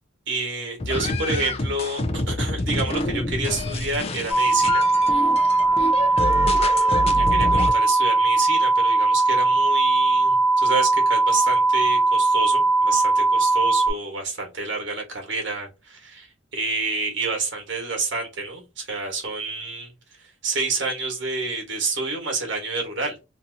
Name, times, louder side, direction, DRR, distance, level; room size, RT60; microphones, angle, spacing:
voice 1, 0.3-4.8 6.6-6.9 7.1-19.9 20.2-23.2, right 3 dB, 70° right, 1.3 m, -29 dB
sound 1, 0.8-7.7, left 2 dB, 30° left, 0.4 m, -27 dB
sound 2, 4.3-13.9, right 3 dB, 10° right, 0.8 m, -19 dB
2.8 x 2.7 x 2.6 m
head